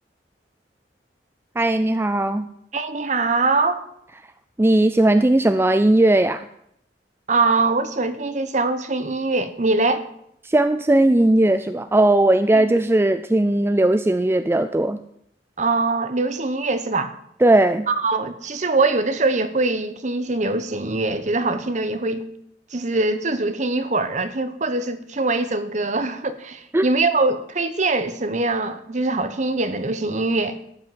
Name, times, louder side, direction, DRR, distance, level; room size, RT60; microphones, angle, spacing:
voice 1, 1.6-2.5 4.6-6.5 10.4-15.0 17.4-17.9 26.7-26.9, right 1 dB, 15° right, 0.4 m, -18 dB
voice 2, 2.7-3.8 7.3-10.0 12.5-12.8 15.6-17.1 17.9-22.3 22.7-30.6, right 3 dB, 40° right, 1.0 m, -23 dB
12.5 x 6.0 x 9.1 m
head